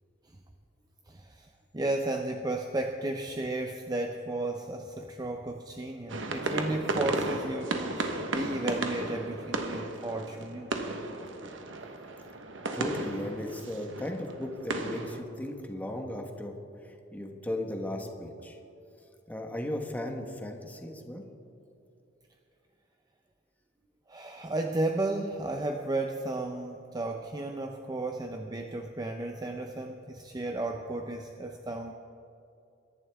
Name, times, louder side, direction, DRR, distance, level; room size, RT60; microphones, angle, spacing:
voice 1, 1.1-10.7 24.1-31.9, right 2 dB, 20° right, 4 dB, 0.6 m, -34 dB
sound 1, 6.1-15.2, right 2 dB, 70° right, 1.2 m, -34 dB
voice 2, 12.7-18.6 19.3-21.2, left 1 dB, 10° left, 2 dB, 1.2 m, -36 dB
23.0 x 11.0 x 3.5 m, 2.7 s
head